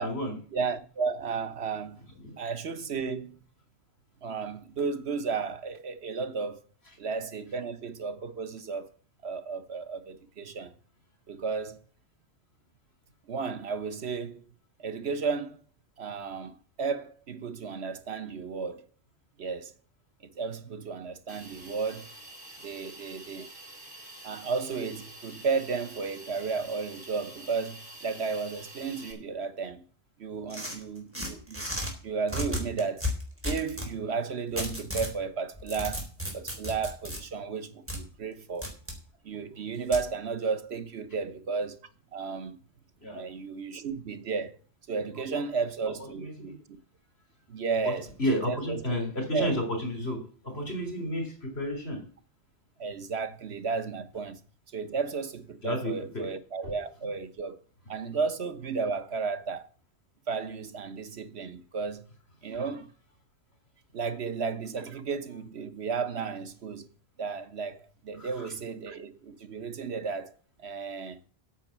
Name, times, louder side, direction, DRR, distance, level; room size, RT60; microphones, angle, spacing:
voice 1, 0.0-0.4 2.2-2.4 43.0-43.3 45.3-45.4 45.9-46.6 47.9-52.0 55.6-56.3 68.1-68.5, equal, 80° left, 3.8 m, -32 dB
voice 2, 0.5-2.0 2.4-3.4 4.2-6.6 7.0-8.9 9.2-10.7 11.3-11.8 13.3-14.5 14.8-15.6 16.0-18.9 19.4-19.7 20.3-22.1 22.6-23.5 24.2-29.8 30.2-31.8 32.0-33.1 33.4-36.1 36.3-38.8 39.2-41.8 42.1-42.6 43.0-44.6 44.9-46.8 47.5-48.1 48.5-48.8 49.3-49.5 52.8-54.4 54.7-57.6 57.9-59.7 60.3-62.0 62.4-62.9 63.9-66.9 67.2-70.3 70.6-71.2, right 5 dB, 85° right, 1.4 m, -33 dB
Hiss, 21.3-29.1, right 1 dB, 55° right, 4.7 m, -47 dB
sound 1, 30.5-31.9 32.3-33.9 34.6-35.1 35.5-37.2 37.9-38.0 38.6-39.0 39.9-40.1, left 1 dB, 10° right, 3.8 m, -33 dB
9.1 x 7.7 x 7.3 m
omnidirectional pair, 1.1 m